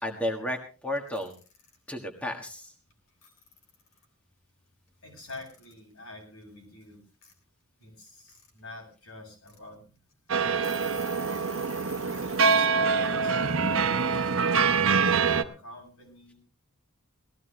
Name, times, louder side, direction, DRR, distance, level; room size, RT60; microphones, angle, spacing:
voice 1, 0.0-1.3 1.9-2.7, left 1 dB, 5° left, 3 dB, 1.5 m, -32 dB
Alarm / Clock, 1.0-1.8 2.9-3.0 3.2-4.0 5.2-5.8 7.2-7.3 8.1-8.5 8.9-9.0 9.4-9.6 10.1-10.2 10.5-12.6, left 4 dB, 65° left, 3.4 m, -48 dB
voice 2, 5.0-7.0 7.8-9.8 10.3-10.8 11.9-14.4 15.4-16.4, left 2 dB, 80° left, 1 dB, 7.7 m, -47 dB
sound 1, 10.3-15.4, right 5 dB, 65° right, 1.0 m, -25 dB
18.5 x 15.0 x 3.2 m, 0.34 s
head